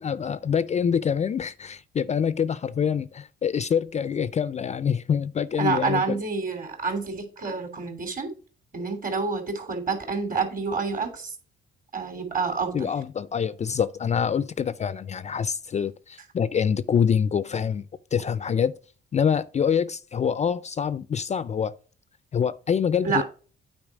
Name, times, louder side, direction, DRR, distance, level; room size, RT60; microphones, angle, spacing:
voice 1, 0.0-6.2 12.7-17.9 18.1-18.7 19.1-21.8 22.3-23.2, left 7 dB, 35° left, 0.4 m, -25 dB
voice 2, 5.6-8.3 8.7-11.3 11.9-12.9 23.0-23.2, right 4 dB, 45° right, 2.9 m, -28 dB
8.8 x 4.5 x 4.7 m
cardioid pair, 90°, 20 cm